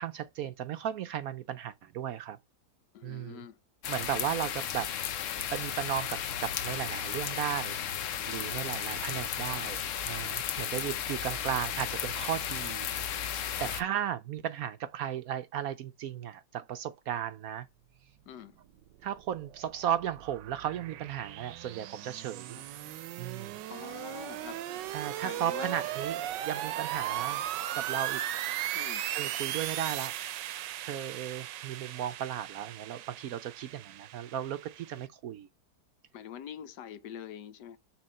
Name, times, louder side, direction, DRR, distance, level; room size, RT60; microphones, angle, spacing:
voice 1, 0.0-2.4 3.0-3.4 3.9-4.9 5.5-7.9 8.3-9.8 10.0-12.9 13.6-17.7 19.0-22.6 23.2-23.5 24.9-27.5 27.7-28.2 29.1-30.1 30.8-35.5, right 10 dB, 70° right, 0.9 m, -35 dB
voice 2, 2.9-3.6 13.6-13.7 18.3-18.5 22.6-22.7 23.7-24.6 25.2-25.8 28.7-29.0 36.1-37.8, left 9 dB, 75° left, 1.3 m, -44 dB
sound 1, 3.8-13.8, left 9 dB, 60° left, 0.9 m, -34 dB
sound 2, 19.0-35.1, right 12 dB, 85° right, 1.3 m, -37 dB
7.2 x 3.5 x 6.4 m
omnidirectional pair, 1.9 m